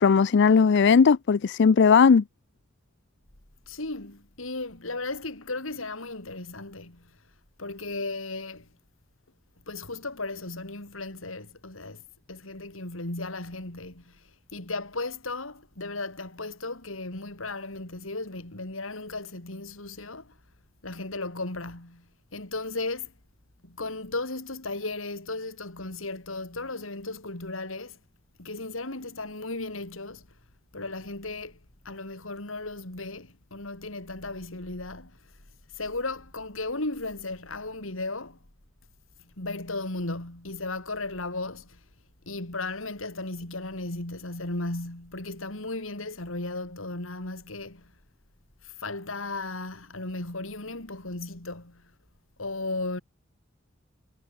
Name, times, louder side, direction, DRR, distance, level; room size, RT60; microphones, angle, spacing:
voice 1, 0.0-2.2, left 5 dB, 60° left, 0.4 m, -18 dB
voice 2, 3.7-7.1 7.6-8.7 9.7-12.0 12.3-20.4 20.8-22.0 22.3-23.1 23.6-28.0 28.4-30.3 30.7-31.6 31.8-35.3 35.7-38.4 39.4-41.8 42.3-47.9 48.6-51.8 52.4-53.0, left 2 dB, 75° left, 3.9 m, -35 dB
head